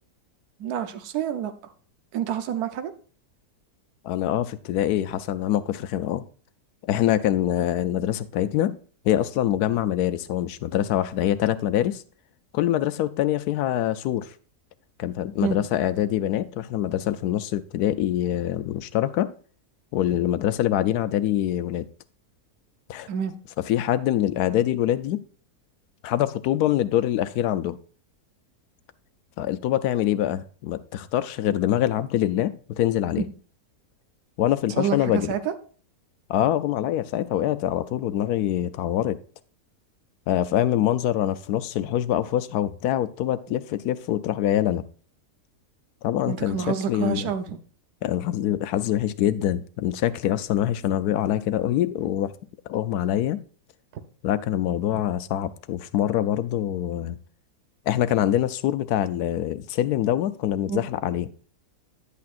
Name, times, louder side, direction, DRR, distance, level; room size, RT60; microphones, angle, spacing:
voice 1, 0.6-1.5 2.1-2.9 15.4-15.6 23.1-23.3 33.2-33.3 34.8-35.5 46.3-47.6 60.7-60.8, right 8 dB, 80° right, 1.3 m, -28 dB
voice 2, 4.0-6.2 6.8-8.8 9.0-12.0 12.5-14.3 15.0-19.3 19.9-21.8 22.9-23.1 23.7-25.2 26.0-27.8 29.4-33.2 34.4-35.3 36.3-39.2 40.3-44.8 46.0-47.3 48.0-52.3 52.7-53.4 54.2-57.2 57.9-61.3, left 12 dB, 80° left, 1.1 m, -24 dB
10.0 x 8.3 x 2.5 m
omnidirectional pair, 1.7 m